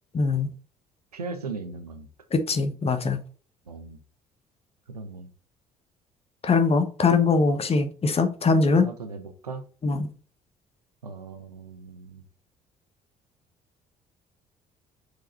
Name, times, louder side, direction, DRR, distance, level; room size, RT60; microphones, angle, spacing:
voice 1, 0.1-0.5 2.3-3.2 6.4-8.9 9.8-10.1, left 4 dB, 30° left, 8 dB, 1.3 m, -22 dB
voice 2, 1.1-2.1 3.7-4.0 4.9-5.3 8.8-9.6 11.0-12.2, right 4 dB, 85° right, 8 dB, 0.7 m, -38 dB
6.2 x 4.9 x 4.1 m, 0.40 s
figure-of-eight pair, 50°, 19 cm